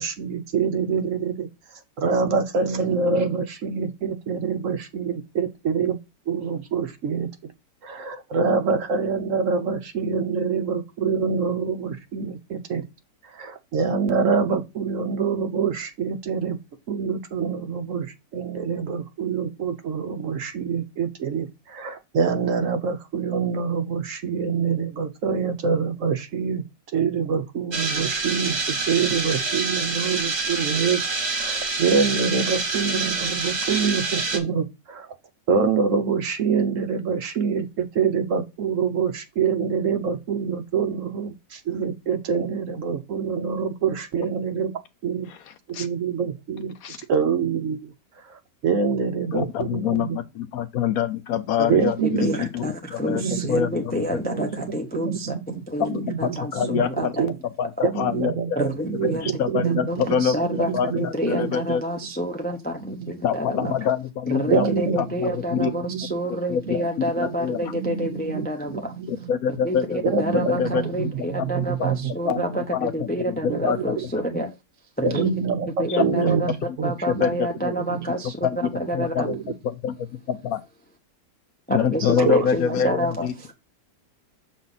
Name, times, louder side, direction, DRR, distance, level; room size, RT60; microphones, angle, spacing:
voice 1, 0.0-6.0 6.3-7.5 7.8-12.8 13.2-16.6 16.9-26.6 26.9-31.0 31.3-35.2 35.5-44.7 45.0-45.3 45.7-46.7 47.1-47.9 48.2-50.2 51.7-52.4 53.0-53.7 54.2-57.3 57.8-61.8 62.8-63.1 63.5-63.7 64.5-66.2 66.7-66.8 67.2-67.3 67.6-69.3 70.0-72.6 73.4-73.6 74.0-74.1 74.3-74.4 75.0-77.4 77.7-78.1 78.8-78.9 79.2-79.5 82.2-82.5, right 6 dB, 60° right, 0.9 m, -26 dB
sound 1, 27.7-34.4, right 3 dB, 35° right, 1.4 m, -26 dB
voice 2, 49.3-53.2 53.5-54.2 55.8-57.1 57.6-57.7 57.9-58.6 59.0-60.4 60.7-61.8 63.2-64.6 65.0-65.7 66.3-67.7 69.1-70.8 71.4-71.5 71.8-71.9 72.3-72.4 72.7-73.8 75.9-76.8 77.1-77.7 78.4-78.6 78.9-79.4 79.6-80.6 81.7-83.3, left 8 dB, 70° left, 1.0 m, -26 dB
voice 3, 51.6-57.3 58.6-60.7 61.0-63.7 64.3-68.9 69.6-74.6 75.0-75.3 75.8-76.5 76.8-78.6 78.9-79.3 81.7-83.5, right 1 dB, 10° left, 0.4 m, -28 dB
6.9 x 4.1 x 4.0 m
omnidirectional pair, 1.8 m